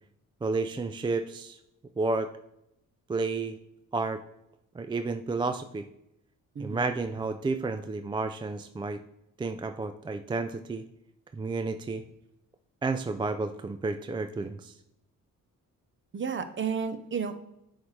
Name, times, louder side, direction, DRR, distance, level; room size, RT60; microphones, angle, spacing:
voice 1, 0.4-1.6 2.0-2.3 3.1-3.6 3.9-4.2 4.7-5.9 6.6-9.0 9.4-10.8 11.3-12.0 12.8-14.8, right 3 dB, 15° right, 9 dB, 0.3 m, -31 dB
voice 2, 6.5-6.9 16.1-17.3, right 6 dB, 35° right, 11 dB, 0.7 m, -32 dB
7.1 x 4.8 x 3.2 m, 0.81 s
cardioid pair, 75°, 34 cm